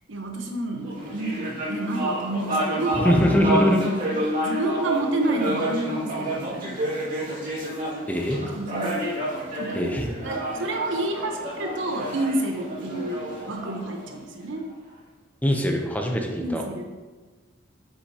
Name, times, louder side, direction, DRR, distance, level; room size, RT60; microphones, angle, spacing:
voice 1, 0.1-3.1 3.5-6.7 8.5-9.0 9.5-14.6 16.4-16.9, right 2 dB, 80° right, 3 dB, 1.0 m, -30 dB
sound 1, 0.8-14.5, right 1 dB, 45° right, 2.1 m, -29 dB
voice 2, 3.0-3.8 8.1-8.5 9.7-10.1 15.4-16.6, equal, 10° left, 2 dB, 0.7 m, -22 dB
8.0 x 6.0 x 2.8 m, 1.3 s
head